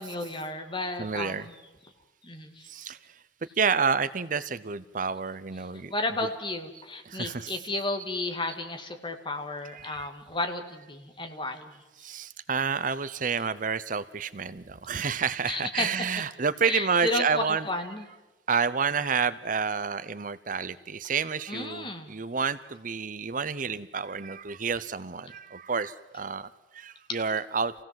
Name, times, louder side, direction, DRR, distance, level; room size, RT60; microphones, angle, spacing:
voice 1, 0.0-1.6 2.2-2.7 5.9-11.8 15.5-15.9 16.6-18.1 21.5-22.2 27.1-27.2, left 2 dB, 25° left, 5 dB, 2.1 m, -33 dB
voice 2, 1.0-1.5 2.7-3.0 3.6-6.3 7.0-7.7 9.6-10.1 12.0-17.9 18.5-27.7, right 5 dB, 45° right, 15 dB, 0.7 m, -29 dB
27.5 x 17.0 x 7.6 m, 1.2 s
head